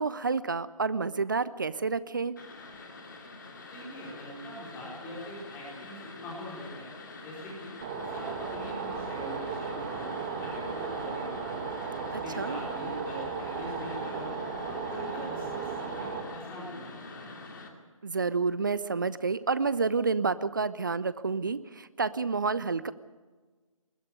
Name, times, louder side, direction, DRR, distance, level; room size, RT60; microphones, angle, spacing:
voice 1, 0.0-2.3 12.1-12.6 18.0-22.9, right 4 dB, 35° right, 17 dB, 0.6 m, -29 dB
sound 1, 2.4-17.7, left 3 dB, 35° left, 2.5 m, -46 dB
voice 2, 3.7-7.7 8.1-11.7 12.0-14.3 14.6-17.3, left 1 dB, 10° left, -4 dB, 4.6 m, -43 dB
sound 2, 7.8-16.2, right 5 dB, 15° right, 1.6 m, -35 dB
20.5 x 14.0 x 9.5 m, 1.4 s
figure-of-eight pair, 150°, 18 cm